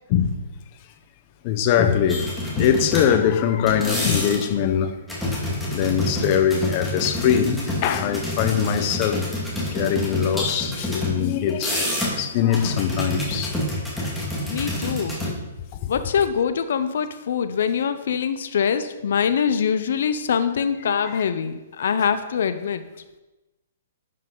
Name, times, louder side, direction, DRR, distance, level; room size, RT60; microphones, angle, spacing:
voice 1, 1.4-5.0 5.7-9.2 9.7-13.5 15.2-15.3 15.7-15.9 21.0-21.2, left 8 dB, 35° left, 0.8 m, -22 dB
sound 1, 2.1-3.3 3.7-4.6 5.1-11.1 11.5-12.2 12.5-15.3, left 1 dB, 5° left, 2.0 m, -28 dB
voice 2, 14.5-15.2 15.9-22.8, left 7 dB, 70° left, 0.6 m, -23 dB
10.5 x 5.6 x 3.9 m
hypercardioid pair, 155°, 0 cm